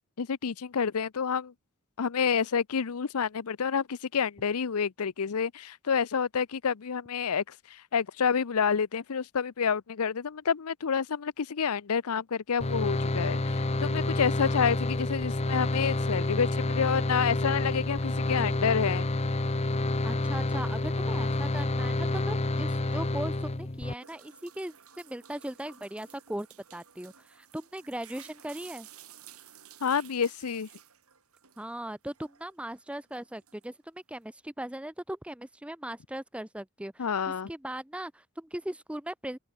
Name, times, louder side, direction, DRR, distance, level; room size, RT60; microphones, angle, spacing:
voice 1, 0.2-1.5 2.0-7.4 7.7-19.1 29.8-30.7 37.0-37.5, left 6 dB, 90° left, 0.6 m, -28 dB
sound 1, 12.6-23.9, left 2 dB, 30° left, 0.8 m, -29 dB
voice 2, 20.0-26.5 26.7-28.9 31.6-37.1 37.5-39.4, right 1 dB, 5° right, 0.6 m, -39 dB
sound 2, 24.0-31.8 32.1-33.8, right 10 dB, 80° right, 7.0 m, -54 dB
open air
head